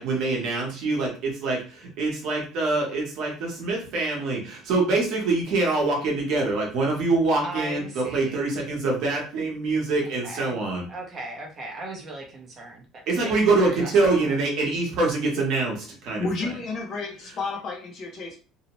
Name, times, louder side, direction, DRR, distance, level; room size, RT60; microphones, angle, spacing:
voice 1, 0.0-10.9 13.1-16.5, right 3 dB, 50° right, -1 dB, 0.9 m, -25 dB
voice 2, 7.4-8.4 10.0-10.6 10.9-14.3 17.0-17.1, right 2 dB, 25° right, 0 dB, 0.6 m, -38 dB
voice 3, 16.2-18.4, left 3 dB, 35° left, 2 dB, 0.5 m, -31 dB
2.7 x 2.0 x 2.9 m, 0.37 s
cardioid pair, 180°, 0 cm